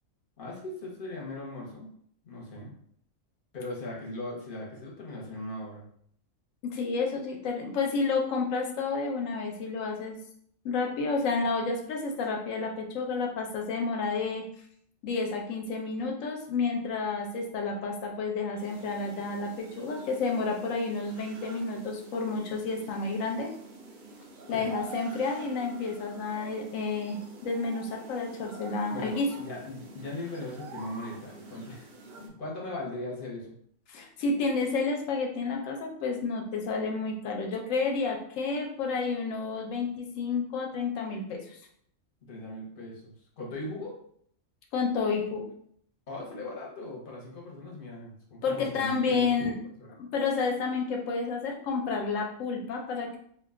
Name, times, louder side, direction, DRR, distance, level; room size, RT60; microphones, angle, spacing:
voice 1, 0.4-1.9 2.2-2.7 3.5-5.9 24.5-24.7 28.9-31.9 32.2-33.5 42.2-43.9 46.1-49.5 49.8-49.9, left 2 dB, 45° left, -3 dB, 0.9 m, -39 dB
voice 2, 6.6-10.2 10.6-14.4 15.0-23.5 24.5-29.3 33.9-41.6 44.7-45.4 48.4-49.5 50.0-53.2, left 4 dB, 75° left, 2 dB, 1.0 m, -30 dB
sound 1, 18.6-32.3, right 3 dB, 65° right, 0.5 m, -47 dB
2.5 x 2.2 x 3.5 m, 0.65 s
omnidirectional pair, 1.4 m